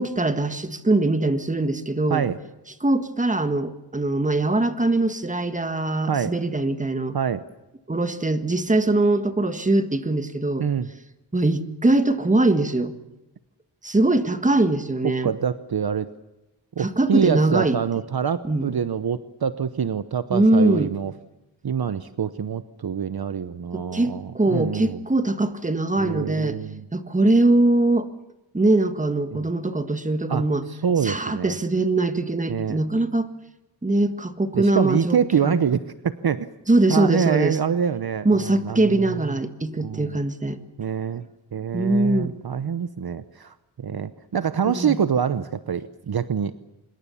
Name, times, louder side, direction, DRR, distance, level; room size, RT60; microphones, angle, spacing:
voice 1, 0.0-2.3 2.8-7.2 7.9-10.6 11.3-12.9 13.8-15.3 16.8-17.8 18.5-18.7 20.3-20.9 23.7-26.6 26.9-28.1 28.5-30.6 31.0-33.3 33.8-35.6 36.7-37.6 38.3-40.6 41.7-42.4 44.8-45.0, right 2 dB, 15° right, 9 dB, 1.7 m, -22 dB
voice 2, 7.1-7.4 10.6-10.9 15.2-16.1 16.8-21.1 21.6-25.0 26.0-26.8 29.3-29.5 30.3-30.4 30.7-31.6 32.5-32.8 34.5-36.5 36.9-39.3 39.8-40.2 40.8-41.3 41.5-46.5, right 7 dB, 50° right, 12 dB, 0.9 m, -25 dB
26.0 x 22.0 x 7.1 m, 0.99 s
wide cardioid pair, 120°, 46 cm